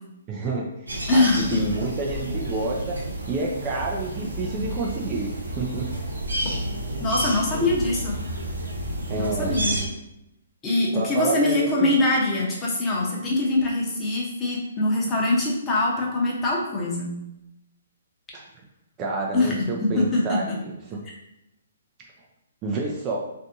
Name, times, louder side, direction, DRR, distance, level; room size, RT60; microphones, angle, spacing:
voice 1, 0.3-5.9 9.1-9.6 11.0-11.9 18.3-18.5 19.0-21.0 22.6-23.2, right 3 dB, 25° right, -1 dB, 0.4 m, -29 dB
sound 1, 0.9-9.9, right 1 dB, 85° right, 0.8 m, -30 dB
voice 2, 1.1-1.6 7.0-8.2 9.1-9.8 10.6-17.2 19.3-20.6, left 2 dB, 20° left, -3 dB, 0.9 m, -23 dB
3.3 x 2.6 x 2.6 m, 0.87 s
figure-of-eight pair, 130°, 0 cm